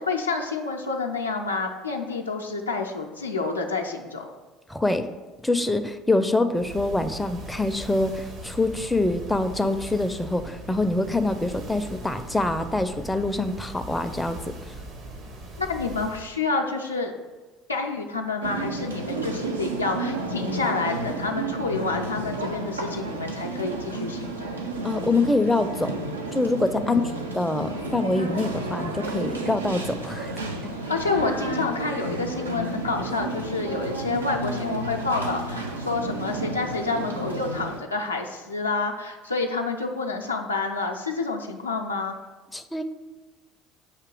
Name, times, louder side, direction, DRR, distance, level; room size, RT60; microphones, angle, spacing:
voice 1, 0.0-4.3 15.6-17.1 17.7-24.4 27.5-27.6 30.9-42.1, left 3 dB, 90° left, 1 dB, 0.4 m, -28 dB
voice 2, 4.7-5.1 5.4-14.4 24.8-25.9 26.3-27.0 27.3-30.3 42.5-42.8, left 2 dB, 10° left, 8 dB, 0.4 m, -25 dB
sound 1, 6.5-16.3, right 1 dB, 60° right, 1.1 m, -40 dB
sound 2, 18.4-37.8, right 2 dB, 85° right, 0.4 m, -32 dB
6.7 x 2.8 x 5.2 m, 1.3 s
figure-of-eight pair, 60°, 0 cm